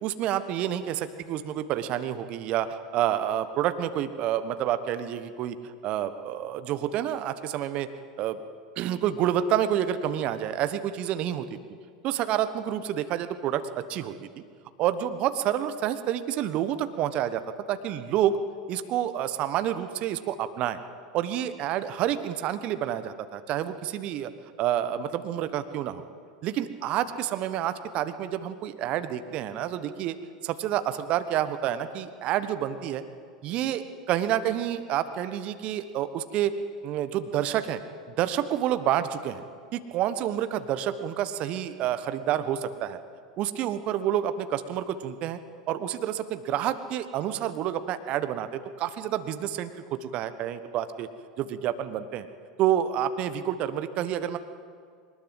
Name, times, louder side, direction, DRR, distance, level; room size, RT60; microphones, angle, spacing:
voice 1, 0.0-7.9 8.2-8.4 8.8-11.5 12.0-14.3 14.8-17.4 17.7-18.4 18.7-20.8 21.1-24.3 24.6-26.0 26.4-30.1 30.4-33.0 33.4-36.5 36.8-37.8 38.1-39.4 39.7-43.0 43.4-45.4 45.7-51.1 51.4-52.3 52.6-54.4, right 11 dB, 45° right, 11 dB, 1.2 m, -28 dB
22.0 x 20.0 x 7.9 m, 2.1 s
figure-of-eight pair, 80°, 3 cm